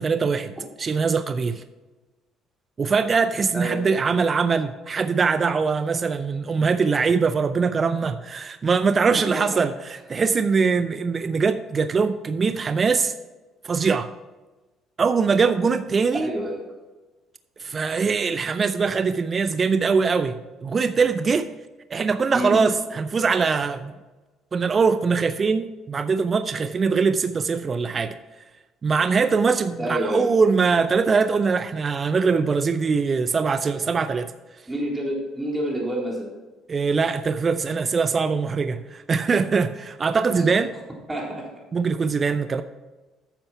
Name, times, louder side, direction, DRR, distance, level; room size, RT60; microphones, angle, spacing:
voice 1, 0.0-1.6 2.8-13.1 13.6-14.1 15.0-16.3 17.6-20.4 20.6-21.5 21.9-23.9 24.5-28.2 28.8-34.3 36.7-40.7 41.7-42.6, right 5 dB, 35° right, 10 dB, 0.5 m, -22 dB
voice 2, 3.5-3.8 9.3-9.6 16.1-16.6 22.3-22.6 29.8-30.3 34.7-36.3 40.4-40.5 41.1-41.5, right 1 dB, 15° right, -2 dB, 3.6 m, -28 dB
10.5 x 6.9 x 4.4 m, 1.2 s
supercardioid pair, 85°, 0 cm